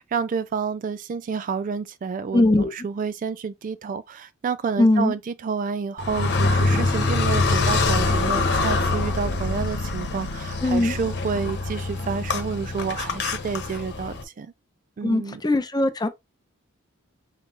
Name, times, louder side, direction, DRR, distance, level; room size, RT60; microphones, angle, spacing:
voice 1, 0.0-14.5 15.0-15.4, right 5 dB, 40° right, 0.3 m, -29 dB
voice 2, 2.3-2.7 4.8-5.1 10.6-11.0 15.0-16.1, left 2 dB, 20° left, 0.6 m, -20 dB
Car, 6.0-14.2, left 3 dB, 55° left, 1.1 m, -24 dB
5.7 x 2.1 x 4.0 m
head